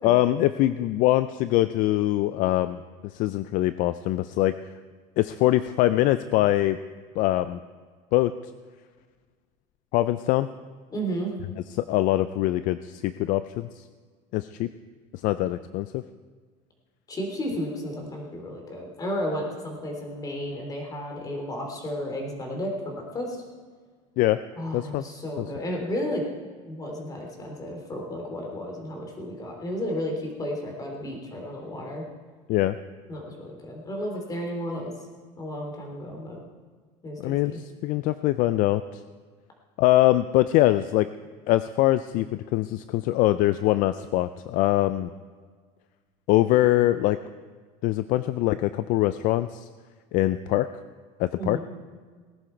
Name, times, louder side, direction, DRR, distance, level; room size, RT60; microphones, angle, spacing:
voice 1, 0.0-2.8 3.1-4.6 5.2-6.8 7.2-7.6 8.1-8.3 9.9-10.5 11.7-13.8 14.3-14.7 15.2-16.0 24.2-24.4 24.7-25.0 25.4-25.5 32.5-32.8 37.2-39.0 39.8-41.1 41.5-45.1 46.3-47.2 47.8-49.7 50.1-50.7 51.2-51.6, left 15 dB, 55° left, 13 dB, 0.5 m, -23 dB
voice 2, 10.9-11.3 17.1-23.4 24.6-26.2 26.7-32.0 33.1-34.9 35.4-36.4 37.0-37.6 51.4-51.6, equal, 20° left, 1 dB, 3.3 m, -33 dB
19.5 x 10.5 x 4.6 m, 1.5 s
cardioid pair, 135°, 16 cm